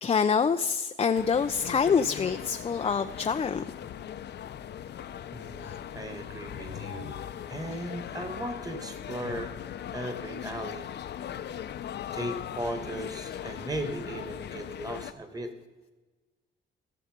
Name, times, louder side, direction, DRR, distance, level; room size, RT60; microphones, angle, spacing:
voice 1, 0.0-3.7, left 6 dB, 30° left, 8 dB, 0.5 m, -26 dB
sound 1, 1.1-15.1, left 9 dB, 60° left, 0.7 m, -39 dB
voice 2, 5.3-7.1 7.5-9.6 9.9-10.9 12.1-15.5, right 1 dB, 20° right, 7 dB, 2.0 m, -37 dB
16.5 x 6.9 x 5.2 m, 1.2 s
cardioid pair, 90°, 20 cm